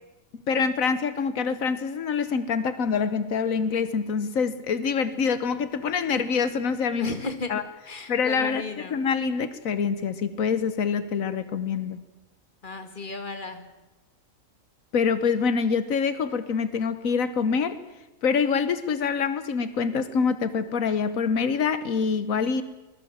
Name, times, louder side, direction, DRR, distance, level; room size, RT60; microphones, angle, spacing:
voice 1, 0.5-7.2 7.5-7.6 8.1-12.0 14.9-17.8 18.2-22.6, left 5 dB, 85° left, 12 dB, 1.5 m, -25 dB
voice 2, 7.0-7.5 7.9-9.0 12.6-13.7, left 3 dB, 35° left, 7 dB, 2.2 m, -34 dB
24.5 x 20.5 x 7.3 m, 1.1 s
omnidirectional pair, 1.4 m